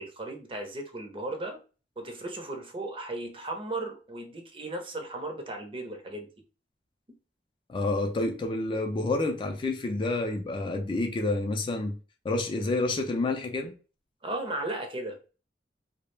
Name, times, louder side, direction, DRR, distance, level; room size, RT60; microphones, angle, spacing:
voice 1, 0.0-1.6 2.0-6.3 14.2-15.3, right 2 dB, 30° right, 0.6 m, -36 dB
voice 2, 7.7-12.0 12.2-13.7, left 2 dB, 30° left, 0.3 m, -29 dB
2.2 x 2.0 x 3.1 m
head